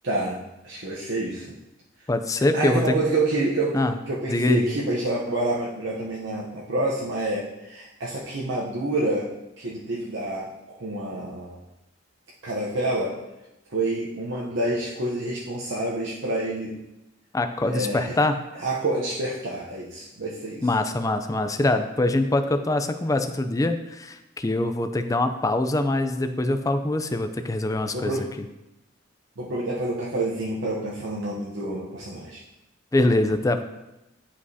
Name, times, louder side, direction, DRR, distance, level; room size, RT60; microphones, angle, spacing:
voice 1, 0.0-1.5 2.5-11.6 12.4-13.2 13.7-16.8 17.7-18.2 18.6-20.7 27.9-28.3 29.4-32.4, right 2 dB, 70° right, -5 dB, 0.8 m, -28 dB
voice 2, 2.1-3.0 3.7-3.9 4.3-4.8 17.3-18.4 20.6-28.1 32.9-33.6, left 2 dB, 15° left, 8 dB, 0.4 m, -24 dB
10.5 x 4.9 x 2.8 m, 0.96 s
head